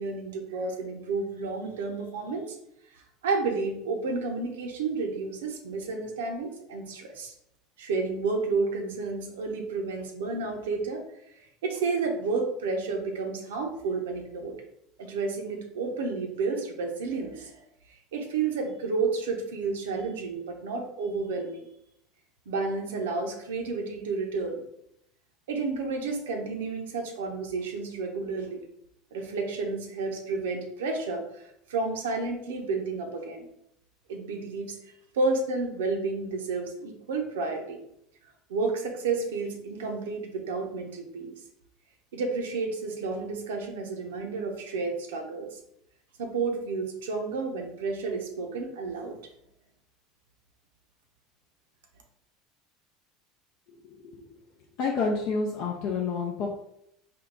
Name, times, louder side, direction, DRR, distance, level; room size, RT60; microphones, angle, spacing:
voice 1, 0.0-2.6 2.9-7.3 7.8-11.0 11.6-14.6 15.0-17.7 18.1-21.6 22.5-24.6 25.5-28.6 29.1-33.5 34.1-37.8 38.5-41.3 42.1-45.6 46.2-49.2, right 4 dB, 85° right, 2 dB, 0.7 m, -31 dB
voice 2, 54.8-56.5, left 4 dB, 60° left, -1 dB, 0.5 m, -29 dB
3.7 x 2.3 x 3.7 m, 0.76 s
supercardioid pair, 95°, 0 cm